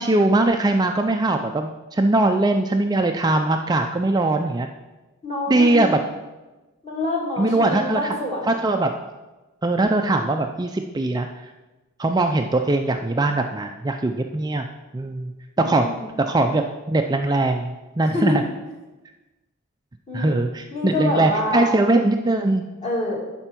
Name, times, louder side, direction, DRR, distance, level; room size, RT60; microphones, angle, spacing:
voice 1, 0.0-4.7 5.5-6.0 7.4-8.1 8.5-8.9 9.6-11.3 12.0-14.7 14.9-15.3 15.6-15.9 16.2-18.4 20.1-22.6, right 2 dB, 20° right, 4 dB, 0.4 m, -21 dB
voice 2, 5.2-5.9 6.8-8.6 15.6-16.1 18.1-18.3 20.1-20.3 20.7-21.7 22.8-23.2, left 2 dB, 30° left, -3 dB, 2.5 m, -26 dB
11.0 x 4.4 x 5.9 m, 1.1 s
head